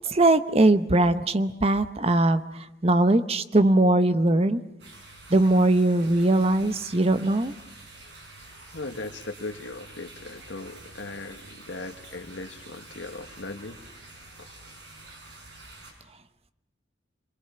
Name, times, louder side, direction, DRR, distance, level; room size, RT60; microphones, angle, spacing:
voice 1, 0.1-2.4 2.8-4.6 5.3-7.5, right 2 dB, 35° right, 12 dB, 0.8 m, -20 dB
sound 1, 4.8-15.9, right 2 dB, 70° right, 6.5 m, -47 dB
voice 2, 8.7-13.8 14.4-14.6, left 2 dB, 75° left, 5 dB, 1.6 m, -38 dB
26.5 x 22.5 x 6.9 m, 0.88 s
head